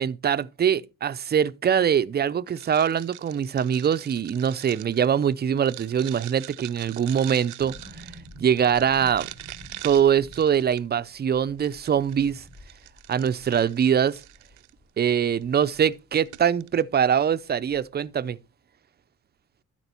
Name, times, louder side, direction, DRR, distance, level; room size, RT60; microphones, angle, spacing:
voice 1, 0.0-8.1 8.4-9.3 9.8-12.4 13.1-14.2 15.0-18.4, right 8 dB, 35° right, 0.5 m, -23 dB
sound 1, 2.5-11.0 11.6-14.7 15.4-15.6 15.9-16.0 16.3-16.7, right 17 dB, 85° right, 0.6 m, -43 dB
sound 2, 7.6-16.4 16.7-16.8 17.1-18.1 18.3-18.4, left 1 dB, 65° left, 4.6 m, -49 dB
12.5 x 4.4 x 4.3 m
cardioid pair, 90°, 30 cm